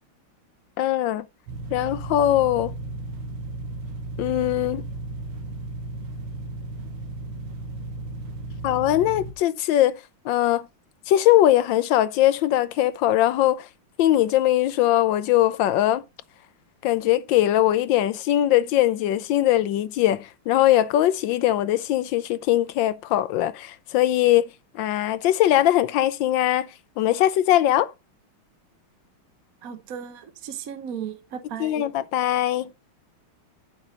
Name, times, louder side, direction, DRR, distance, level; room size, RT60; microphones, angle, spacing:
voice 1, 0.8-1.2 1.7-2.7 4.2-4.8 8.6-10.0 10.2-10.7 11.1-13.7 14.0-16.0 16.8-24.5 24.7-26.7 27.0-27.9 31.6-32.7, left 13 dB, 75° left, 1.2 m, -21 dB
sound 1, 1.5-9.3, right 2 dB, 85° right, 2.2 m, -35 dB
voice 2, 29.6-31.9, right 8 dB, 50° right, 1.2 m, -35 dB
9.9 x 5.5 x 3.9 m
omnidirectional pair, 2.3 m